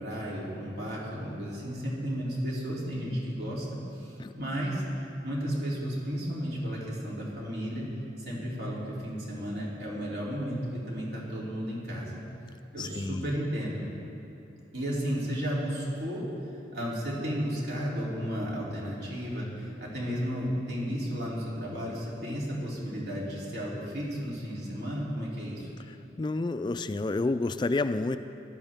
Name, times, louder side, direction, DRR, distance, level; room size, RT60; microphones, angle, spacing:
voice 1, 0.0-3.6 3.9-4.8 5.2-7.9 8.2-12.2 12.7-13.8 14.7-16.2 16.7-25.7, equal, 70° right, -5 dB, 3.3 m, -33 dB
voice 2, 12.8-13.3 26.2-28.2, left 2 dB, 25° left, 11 dB, 0.3 m, -29 dB
17.5 x 12.0 x 3.6 m, 2.7 s
head